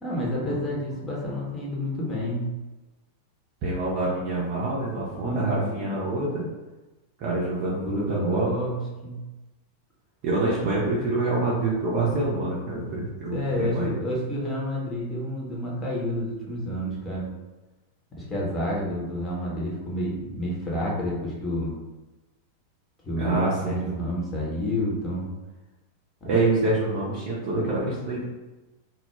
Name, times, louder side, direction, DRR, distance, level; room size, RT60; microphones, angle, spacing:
voice 1, 0.0-2.5 5.2-5.9 7.8-9.2 13.3-17.3 18.2-21.7 23.0-25.3 26.2-26.7, left 1 dB, 20° left, -5 dB, 0.8 m, -29 dB
voice 2, 3.6-6.5 7.2-8.5 10.2-13.9 23.2-24.1 26.2-28.2, right 2 dB, 45° right, -6 dB, 0.5 m, -26 dB
2.2 x 2.1 x 3.1 m, 1.1 s
figure-of-eight pair, 90°, 0 cm